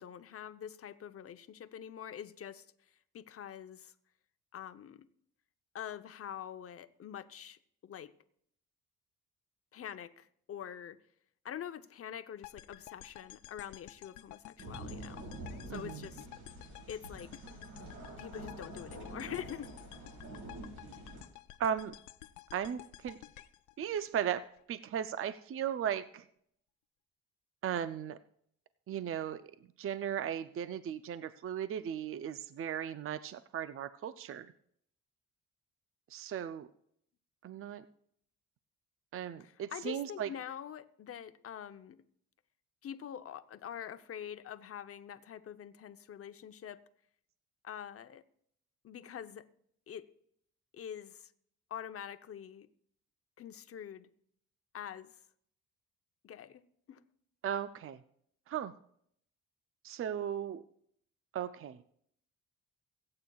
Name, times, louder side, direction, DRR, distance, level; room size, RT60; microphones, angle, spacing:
voice 1, 0.0-2.7 3.1-3.9 4.5-5.1 5.7-8.1 9.7-11.0 11.4-15.2 15.7-16.3 16.9-17.3 18.2-19.8 39.4-42.0 42.8-46.8 47.6-48.2 48.8-49.5 49.9-50.1 50.7-51.3 51.7-52.7 53.4-54.1 54.7-55.2 56.2-56.6 56.9-57.0, left 9 dB, 50° left, 11 dB, 0.8 m, -45 dB
sound 1, 12.4-24.6, left 14 dB, 80° left, 0.5 m, -52 dB
sound 2, 14.6-21.2, right 1 dB, 90° right, 4.7 m, -47 dB
voice 2, 15.7-16.1 21.6-21.9 22.5-23.2 23.8-26.2 27.6-28.2 28.9-29.5 29.8-34.5 36.1-36.7 37.4-37.8 39.1-40.3 57.4-58.0 58.5-58.7 59.8-60.6 61.3-61.8, right 9 dB, 45° right, 13 dB, 0.5 m, -36 dB
24.0 x 8.7 x 2.3 m, 0.68 s
cardioid pair, 90°, 30 cm